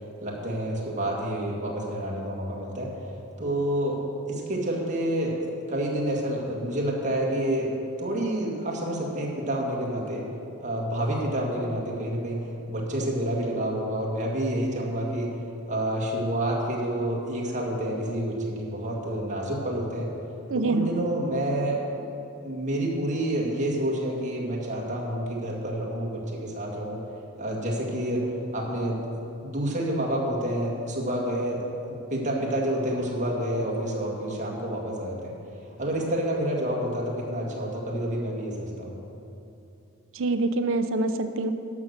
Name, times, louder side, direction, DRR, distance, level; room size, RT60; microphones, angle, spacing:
voice 1, 0.2-2.9 3.4-4.0 4.3-10.2 10.6-12.4 12.7-15.3 15.7-20.1 20.5-21.8 22.4-27.0 27.4-28.3 28.5-29.0 29.4-35.3 35.8-39.0, right 1 dB, 35° right, -2 dB, 1.9 m, -28 dB
voice 2, 20.5-20.9 40.1-41.5, right 2 dB, 65° right, 8 dB, 0.7 m, -25 dB
11.5 x 6.4 x 6.8 m, 2.9 s
head